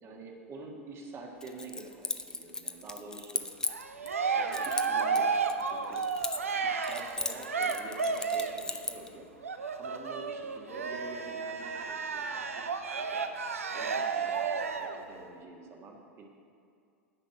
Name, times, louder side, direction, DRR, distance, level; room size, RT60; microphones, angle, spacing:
voice 1, 0.0-3.5 4.3-6.1 6.6-9.3 9.8-13.2 13.7-16.3, right 3 dB, 35° right, 1 dB, 1.6 m, -47 dB
Keys jangling, 1.4-4.1 4.5-6.6 6.8-9.1, left 3 dB, 10° left, 0.5 m, -37 dB
Cheering, 3.7-8.7 9.4-15.0, right 5 dB, 80° right, 0.6 m, -32 dB
9.8 x 5.6 x 7.5 m, 2.4 s
figure-of-eight pair, 85°, 7 cm